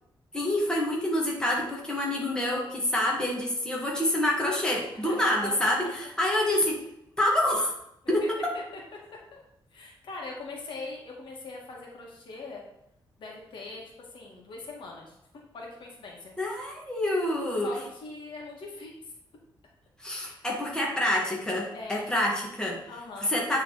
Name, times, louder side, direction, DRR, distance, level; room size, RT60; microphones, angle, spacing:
voice 1, 0.3-6.8 7.2-7.7 8.1-8.2 16.4-17.7 20.0-22.8 23.2-23.6, left 1 dB, 10° left, -3 dB, 2.0 m, -27 dB
voice 2, 5.0-5.9 8.2-8.3 8.5-8.6 8.9-9.0 9.3-9.4 9.7-12.6 13.2-15.2 15.5-16.3 17.6-19.1 20.4-20.5 21.7-22.1 22.9-23.3, left 3 dB, 75° left, -2 dB, 2.0 m, -41 dB
9.9 x 3.9 x 4.1 m, 0.77 s
cardioid pair, 105°, 8 cm